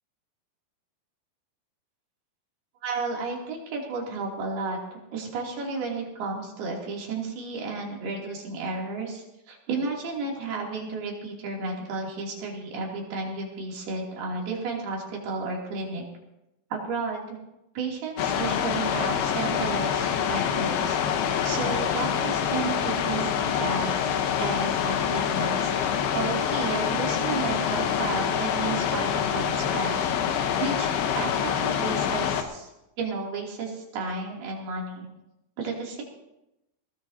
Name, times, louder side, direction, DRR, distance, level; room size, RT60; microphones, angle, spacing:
voice 1, 2.8-4.8 5.1-16.0 16.7-17.4 17.7-21.0 21.4-30.1 30.6-32.7 33.0-35.1 35.6-36.0, right 4 dB, 75° right, -2 dB, 4.9 m, -33 dB
sound 1, 18.2-32.4, left 8 dB, 85° left, 3.1 m, -26 dB
21.0 x 17.5 x 2.8 m, 0.91 s
omnidirectional pair, 4.5 m